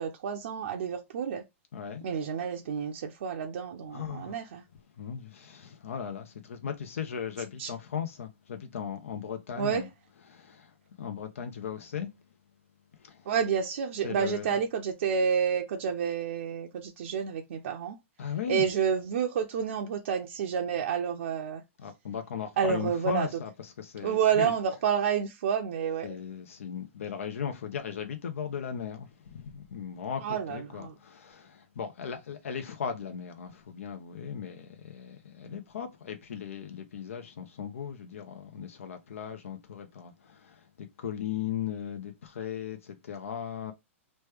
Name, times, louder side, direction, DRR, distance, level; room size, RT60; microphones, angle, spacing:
voice 1, 0.0-1.4 2.0-4.6 7.6-7.7 9.6-9.9 13.3-18.0 18.5-21.6 22.6-23.3 24.0-26.1 30.2-30.9, right 7 dB, 65° right, 0.5 m, -29 dB
voice 2, 1.7-2.0 3.9-4.4 5.0-9.9 10.3-12.1 13.0-13.3 14.0-14.6 18.2-18.6 21.8-24.5 26.0-43.7, left 8 dB, 75° left, 0.6 m, -37 dB
3.1 x 2.2 x 3.4 m
hypercardioid pair, 135°, 7 cm